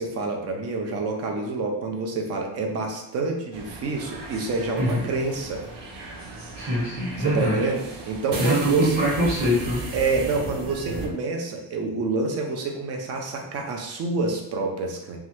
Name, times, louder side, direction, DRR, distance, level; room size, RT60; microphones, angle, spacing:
voice 1, 0.0-5.6 7.2-7.8 8.1-9.0 9.9-15.2, right 3 dB, 35° right, 2 dB, 0.4 m, -27 dB
sound 1, 3.5-11.1, right 2 dB, 70° right, 0.7 m, -36 dB
voice 2, 4.8-5.1 6.6-7.7 8.4-9.9, right 1 dB, 55° right, -7 dB, 1.5 m, -23 dB
3.1 x 2.3 x 2.9 m, 0.87 s
cardioid pair, 175°, 42 cm